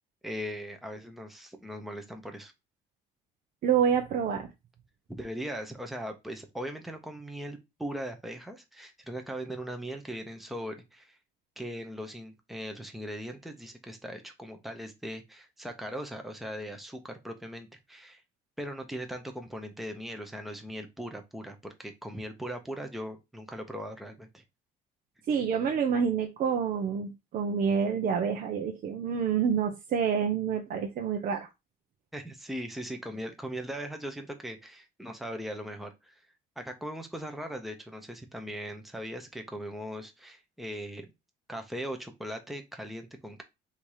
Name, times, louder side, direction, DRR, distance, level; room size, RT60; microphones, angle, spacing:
voice 1, 0.2-2.5 5.1-11.2 11.6-18.2 18.6-24.4 32.1-36.2 36.6-41.1 41.5-43.4, equal, ahead, 4 dB, 0.9 m, -39 dB
voice 2, 3.6-4.5 25.3-31.5, right 7 dB, 55° right, 3 dB, 0.8 m, -28 dB
3.5 x 2.9 x 4.7 m, 0.23 s
cardioid pair, 110°, 17 cm